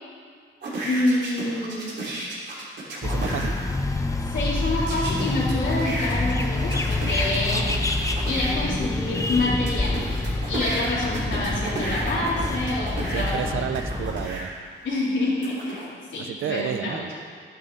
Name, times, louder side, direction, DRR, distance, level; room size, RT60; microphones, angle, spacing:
sound 1, 0.6-3.5 4.9-8.5 9.1-14.4 15.0-15.9, right 1 dB, 60° right, 3.5 m, -33 dB
voice 1, 0.9-1.9 4.3-7.7 8.2-10.1 10.5-13.5 14.8-15.9 16.1-17.0, left 2 dB, 65° left, -6 dB, 3.7 m, -27 dB
sound 2, 3.0-14.3, left 2 dB, 15° left, 0.9 m, -27 dB
voice 2, 3.0-3.5 13.1-14.5 16.2-17.1, right 9 dB, 85° right, 10 dB, 0.7 m, -31 dB
12.5 x 11.5 x 4.2 m, 2.1 s
cardioid pair, 125°, 21 cm